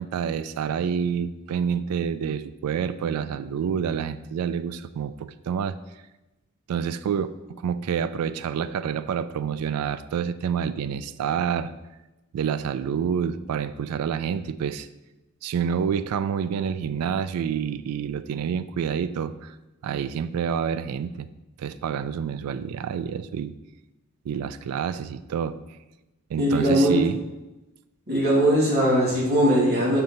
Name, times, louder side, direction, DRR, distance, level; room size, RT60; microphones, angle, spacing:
voice 1, 0.0-5.8 6.7-11.7 12.3-14.9 15.4-19.6 19.8-21.3 21.6-23.6 24.3-25.6 26.3-27.2, right 7 dB, 80° right, 13 dB, 0.3 m, -28 dB
voice 2, 26.4-27.0 28.1-30.0, equal, 50° right, -5 dB, 2.2 m, -20 dB
6.7 x 6.0 x 3.0 m, 1.0 s
head